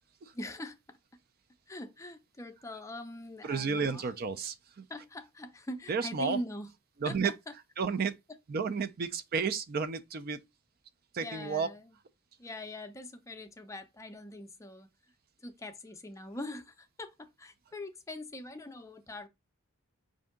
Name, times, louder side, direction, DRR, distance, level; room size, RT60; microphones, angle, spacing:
voice 1, 0.3-1.0 1.7-4.0 4.9-6.7 7.0-7.3 11.2-11.9 12.4-14.9 15.4-19.3, left 1 dB, 15° left, 0.5 m, -42 dB
voice 2, 3.4-4.9 5.9-6.4 7.0-7.3 7.8-8.2 8.5-10.4 11.1-11.7, right 5 dB, 45° right, 0.4 m, -32 dB
5.4 x 2.6 x 3.6 m
head